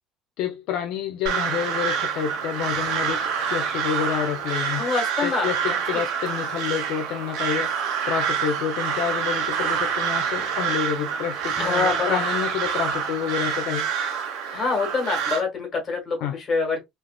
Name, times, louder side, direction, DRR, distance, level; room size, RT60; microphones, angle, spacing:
voice 1, 0.4-4.8 5.2-13.9 16.2-16.4, left 9 dB, 70° left, 0.4 m, -29 dB
Crow, 1.3-15.4, right 7 dB, 85° right, 0.8 m, -27 dB
voice 2, 4.8-6.0 11.6-12.2 14.5-16.8, left 4 dB, 30° left, 1.4 m, -26 dB
3.2 x 2.5 x 2.2 m
cardioid pair, 160°, 0 cm